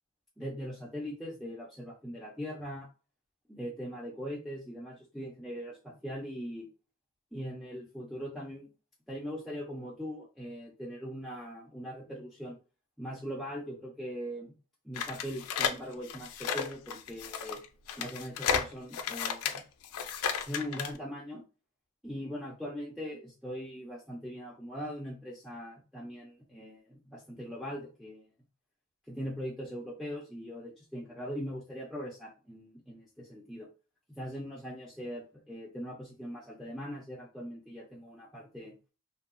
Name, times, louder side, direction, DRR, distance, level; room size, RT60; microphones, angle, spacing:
voice 1, 0.4-2.9 3.5-6.7 7.3-8.7 9.1-12.6 13.0-14.5 14.8-17.6 18.0-19.6 20.5-21.4 22.0-28.3 29.1-33.7 34.1-38.8, equal, ahead, -5 dB, 0.3 m, -41 dB
sound 1, 15.0-21.0, left 7 dB, 85° left, 0.4 m, -33 dB
2.7 x 2.2 x 2.4 m, 0.34 s
head